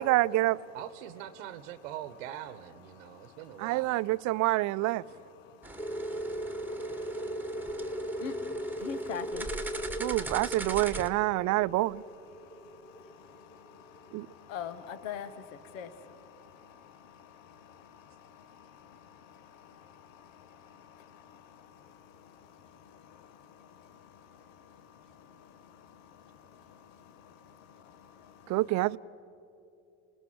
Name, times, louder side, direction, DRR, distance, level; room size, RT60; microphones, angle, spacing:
voice 1, 0.0-0.6 3.6-5.0 10.0-12.0 14.1-14.3 28.5-29.0, right 19 dB, 50° right, 0.5 m, -27 dB
voice 2, 0.7-4.1, right 12 dB, 75° right, 1.0 m, -43 dB
voice 3, 3.0-3.5 4.4-4.5 5.1-11.6 12.3-28.6, left 7 dB, 75° left, 1.3 m, -48 dB
sound 1, 5.6-11.1, right 2 dB, 5° right, 1.6 m, -41 dB
sound 2, 5.8-14.1, equal, 10° left, 0.8 m, -38 dB
28.5 x 19.0 x 7.8 m
hypercardioid pair, 85°, 38 cm